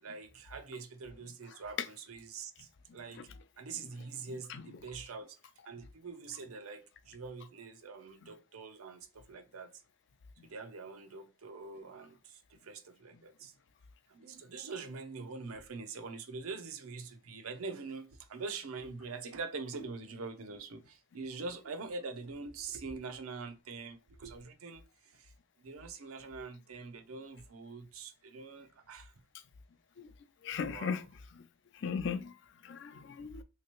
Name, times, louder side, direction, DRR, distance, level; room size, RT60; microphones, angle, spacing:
voice 1, 0.0-3.3 3.6-5.4 5.6-9.8 10.4-13.5 14.1-25.3 25.6-29.1 30.6-31.0, right 4 dB, 90° right, 0.6 m, -44 dB
voice 2, 30.4-31.0 31.8-32.3 32.6-33.4, left 6 dB, 55° left, 0.4 m, -36 dB
3.2 x 2.9 x 2.9 m
head